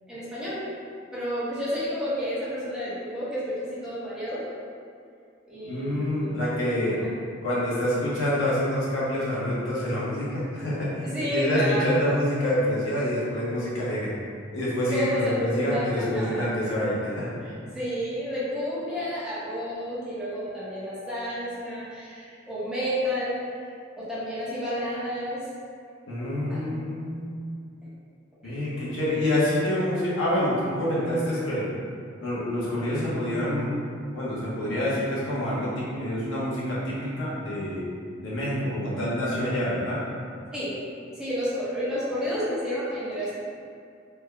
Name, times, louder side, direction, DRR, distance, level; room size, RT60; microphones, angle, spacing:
voice 1, 0.1-0.7 1.1-3.5 3.8-4.4 5.5-6.4 7.0-7.1 11.0-11.9 14.9-16.5 17.4-23.5 24.0-25.4 26.5-26.6 28.4-28.6 40.5-40.7 41.2-43.3, equal, 5° right, -11 dB, 0.8 m, -31 dB
voice 2, 5.6-7.0 7.4-14.1 14.5-17.3 26.1-27.4 28.4-31.7 32.2-33.7 34.1-37.8 38.2-40.0, left 1 dB, 80° left, -8 dB, 1.0 m, -27 dB
3.5 x 2.2 x 3.3 m, 2.3 s
head